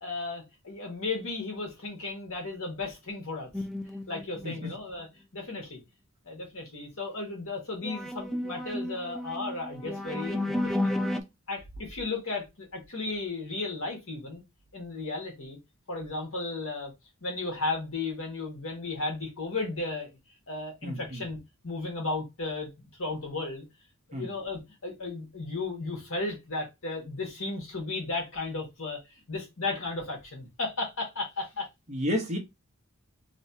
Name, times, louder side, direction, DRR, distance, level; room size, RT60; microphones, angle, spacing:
voice 1, 0.0-3.5 4.1-5.1 5.3-5.8 6.2-10.6 10.8-11.0 11.5-14.4 14.7-15.6 15.9-16.9 17.2-20.2 20.5-21.4 21.6-23.6 24.1-29.0 29.3-31.7, left 3 dB, 70° left, 1.6 m, -34 dB
sound 1, 3.5-4.6 7.8-11.2, left 1 dB, ahead, 0.4 m, -32 dB
voice 2, 20.8-21.2 24.1-24.3 31.9-32.4, left 1 dB, 35° right, 1.0 m, -31 dB
3.2 x 3.1 x 2.8 m
head